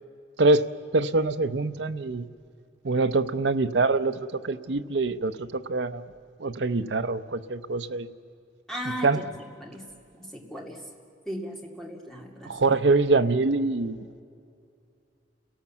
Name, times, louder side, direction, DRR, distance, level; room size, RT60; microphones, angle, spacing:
voice 1, 0.9-2.3 2.8-6.1 6.4-8.1 8.8-9.2 12.4-14.2, right 3 dB, 65° right, 10 dB, 0.7 m, -24 dB
voice 2, 8.7-9.2 9.6-9.8 10.2-10.8 11.3-12.5, equal, ahead, 0 dB, 2.2 m, -36 dB
29.5 x 17.5 x 7.3 m, 2.4 s
head